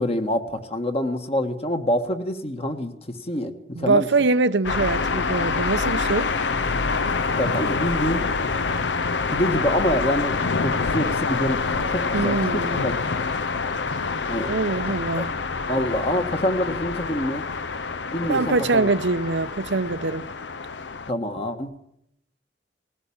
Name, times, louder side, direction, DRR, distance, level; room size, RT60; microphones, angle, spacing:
voice 1, 0.0-4.1 7.4-8.3 9.3-13.3 14.3-14.6 14.9-15.3 15.7-17.4 18.1-18.9 21.1-21.7, equal, 35° left, 1.7 m, -26 dB
voice 2, 3.8-6.3 12.1-12.9 14.5-15.3 18.3-20.3, right 3 dB, 90° right, 0.8 m, -23 dB
sound 1, 4.6-21.1, left 4 dB, 85° left, 0.7 m, -26 dB
20.0 x 16.5 x 8.7 m
head